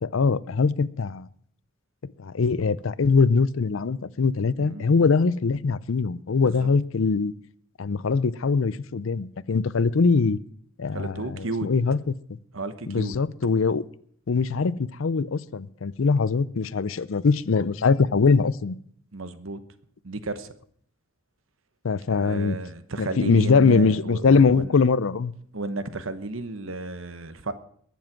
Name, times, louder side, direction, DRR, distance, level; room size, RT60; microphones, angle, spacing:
voice 1, 0.0-1.3 2.2-7.3 7.8-10.4 10.8-12.0 12.3-12.4 12.9-13.8 14.3-18.7 21.8-22.6 23.0-25.3, left 4 dB, 70° left, 18 dB, 0.5 m, -22 dB
voice 2, 4.6-5.1 6.4-6.7 10.9-11.7 12.5-13.2 19.1-19.6 20.0-20.5 22.1-24.7 25.5-27.5, right 2 dB, 75° right, 12 dB, 1.1 m, -33 dB
21.5 x 7.3 x 6.0 m, 0.63 s
head